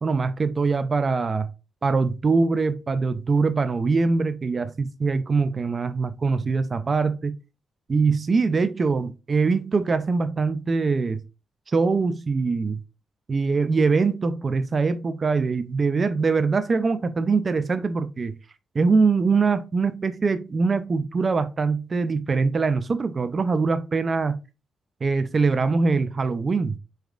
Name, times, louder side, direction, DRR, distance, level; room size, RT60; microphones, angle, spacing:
voice 1, 0.0-1.5 1.8-7.4 7.9-11.2 11.7-12.8 13.3-18.3 18.7-24.4 25.0-26.8, right 4 dB, 40° right, 0.3 m, -23 dB
4.8 x 3.2 x 2.3 m
cardioid pair, 75°, 0 cm